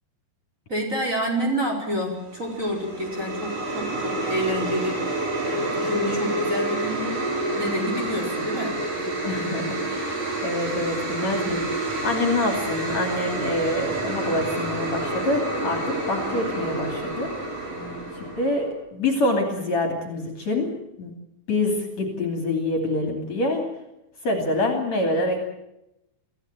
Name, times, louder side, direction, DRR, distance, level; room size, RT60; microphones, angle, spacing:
voice 1, 0.7-5.0 5.4-9.1 17.7-18.1, equal, 20° right, 0 dB, 5.0 m, -29 dB
sound 1, 2.2-18.7, right 2 dB, 60° right, 7.2 m, -28 dB
voice 2, 9.2-17.4 18.2-21.2 21.5-23.7 24.2-25.4, left 2 dB, 45° left, 3 dB, 3.7 m, -26 dB
25.0 x 15.5 x 9.1 m, 0.89 s
omnidirectional pair, 4.4 m